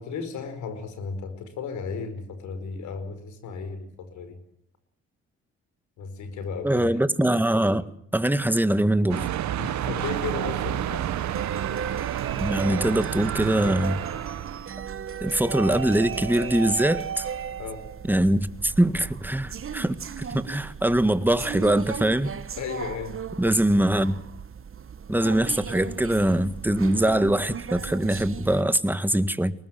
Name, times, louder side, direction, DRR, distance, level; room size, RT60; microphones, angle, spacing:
voice 1, 0.0-4.4 6.0-7.0 9.6-11.1 17.6-17.8 22.6-23.2, left 5 dB, 80° left, 5.1 m, -34 dB
voice 2, 6.6-9.3 12.4-14.0 15.2-17.2 18.1-22.3 23.4-24.2 25.1-29.5, right 1 dB, 5° right, 1.8 m, -23 dB
sound 1, 9.1-14.7, right 12 dB, 70° right, 1.2 m, -30 dB
sound 2, 9.9-28.6, right 8 dB, 45° right, 1.4 m, -36 dB
24.0 x 19.5 x 7.7 m
supercardioid pair, 55°, 29 cm